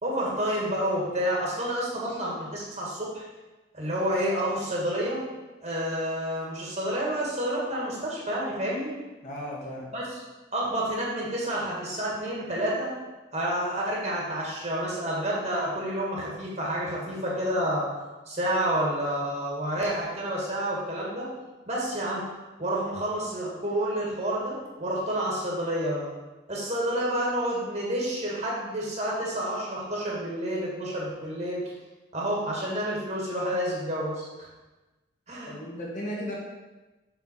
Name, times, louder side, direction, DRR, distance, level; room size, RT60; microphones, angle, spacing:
voice 1, 0.0-3.3 3.7-5.2 5.6-8.9 9.9-10.0 10.5-12.9 13.3-17.9 18.3-21.3 21.7-22.2 22.6-26.1 26.5-31.6 32.1-34.5 35.3-35.5, right 1 dB, 40° right, -4 dB, 2.0 m, -29 dB
voice 2, 9.2-9.9 35.4-36.4, equal, 40° left, -3 dB, 2.0 m, -35 dB
7.0 x 6.1 x 4.6 m, 1.1 s
head